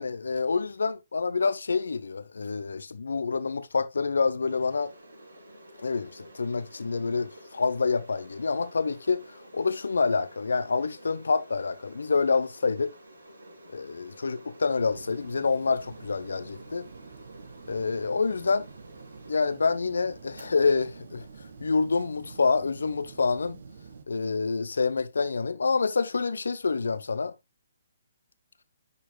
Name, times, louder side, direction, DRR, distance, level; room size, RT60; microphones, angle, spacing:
voice 1, 0.0-4.9 5.8-12.9 13.7-16.9 17.7-18.7 19.3-21.3 21.6-23.6 24.1-27.3, left 4 dB, 70° left, 0.8 m, -27 dB
sound 1, 4.5-22.9, right 1 dB, 75° right, 5.1 m, -51 dB
sound 2, 14.8-24.0, right 5 dB, 60° right, 1.4 m, -48 dB
11.0 x 6.5 x 2.3 m
figure-of-eight pair, 130°, 0 cm